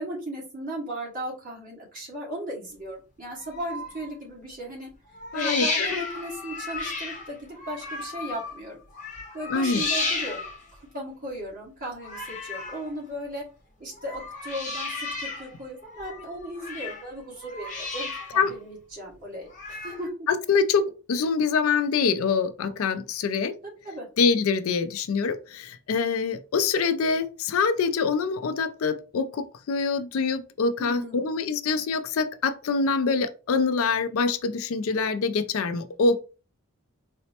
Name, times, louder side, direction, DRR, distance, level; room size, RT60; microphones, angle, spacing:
voice 1, 0.0-4.9 5.3-8.8 9.1-10.4 10.7-13.4 13.8-20.3 21.1-21.2 23.6-24.1 30.8-31.3, equal, 40° right, 1.5 m, -36 dB
sound 1, 3.3-4.1 5.1-8.6 8.9-10.7 12.0-12.9 13.9-15.5 15.8-17.1 17.4-18.5 19.5-20.1, left 3 dB, 35° left, 0.8 m, -33 dB
voice 2, 5.3-6.0 9.5-9.8 18.4-18.6 20.5-23.5 24.2-36.2, left 5 dB, 70° left, 0.4 m, -25 dB
4.1 x 2.1 x 2.8 m
head